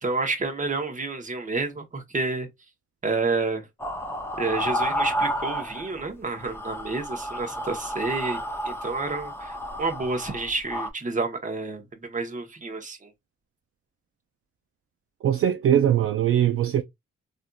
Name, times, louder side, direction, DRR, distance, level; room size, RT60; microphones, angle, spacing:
voice 1, 0.0-2.5 3.0-3.7 4.4-8.4 8.6-13.1, right 3 dB, 25° right, 1.0 m, -29 dB
sound 1, 3.8-6.1 6.3-10.9, equal, 10° left, 0.6 m, -31 dB
voice 2, 15.2-16.8, right 10 dB, 45° right, 0.5 m, -21 dB
3.4 x 2.7 x 2.3 m
cardioid pair, 90°, 30 cm